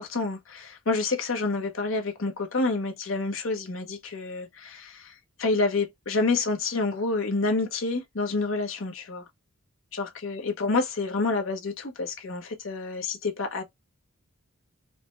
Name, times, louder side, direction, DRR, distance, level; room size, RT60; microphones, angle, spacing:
voice 1, 0.0-9.2 9.9-13.6, left 3 dB, 70° left, 1.0 m, -28 dB
4.9 x 2.1 x 2.4 m
head